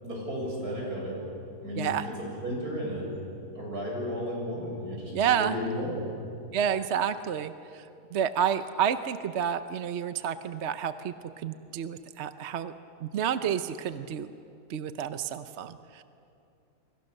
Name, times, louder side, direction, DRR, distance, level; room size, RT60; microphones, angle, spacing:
voice 1, 0.0-1.2 1.6-2.1 2.4-3.1 3.5-6.1, equal, 75° right, -2 dB, 7.7 m, -33 dB
voice 2, 1.7-2.1 5.1-5.5 6.5-12.7 13.0-14.3 14.7-16.0, right 8 dB, 55° right, 11 dB, 0.9 m, -30 dB
29.0 x 23.0 x 6.6 m, 2.6 s
omnidirectional pair, 1.7 m